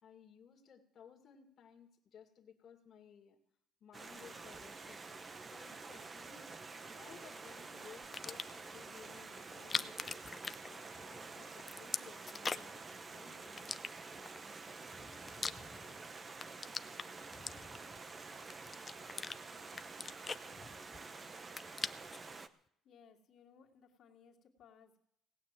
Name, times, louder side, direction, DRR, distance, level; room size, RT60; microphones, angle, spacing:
voice 1, 0.0-3.4 3.8-5.0 5.4-6.5 6.9-10.3 10.7-13.7, left 7 dB, 40° left, 0 dB, 2.3 m, -58 dB
Stream, 3.9-22.5, right 4 dB, 25° right, 0.9 m, -49 dB
sound 1, 8.0-8.7 9.5-11.2 11.5-12.8 13.6-14.4 14.9-16.0 16.3-18.0 18.5-19.4 19.7-21.1 21.4-22.3, left 4 dB, 25° left, 0.5 m, -41 dB
voice 2, 22.8-25.0, left 6 dB, 60° left, -3 dB, 2.4 m, -62 dB
18.0 x 9.2 x 7.5 m, 0.72 s
cardioid pair, 125°, 0 cm